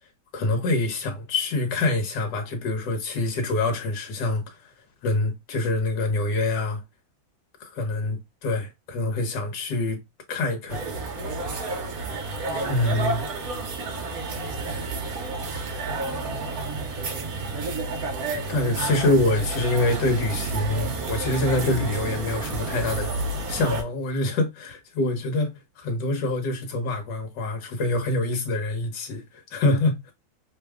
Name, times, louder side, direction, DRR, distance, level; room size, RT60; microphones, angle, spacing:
voice 1, 0.3-4.7 5.0-6.8 7.6-10.0 10.3-10.8 12.6-13.2 18.3-23.2 23.5-30.1, left 2 dB, 65° left, 1.6 m, -25 dB
sound 1, 10.7-23.8, right 3 dB, 55° right, 1.2 m, -30 dB
voice 2, 12.5-13.3 13.6-14.9 15.9-18.1 18.5-19.1, right 8 dB, 75° right, 1.3 m, -42 dB
3.5 x 2.3 x 3.4 m
omnidirectional pair, 2.2 m